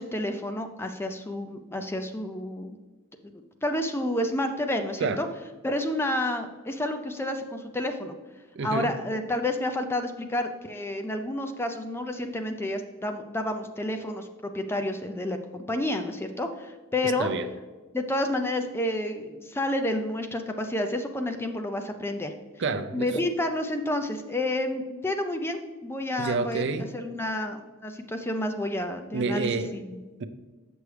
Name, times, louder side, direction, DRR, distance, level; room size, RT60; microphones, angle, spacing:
voice 1, 0.0-2.8 3.2-3.3 3.6-5.3 5.6-8.1 8.6-17.3 17.9-22.3 22.9-30.0, left 1 dB, 10° left, 6 dB, 0.4 m, -30 dB
voice 2, 8.6-8.9 17.0-17.5 22.6-23.2 26.2-26.9 29.1-29.7 30.2-30.3, right 4 dB, 50° right, 10 dB, 0.4 m, -29 dB
8.0 x 6.1 x 3.2 m, 1.3 s
head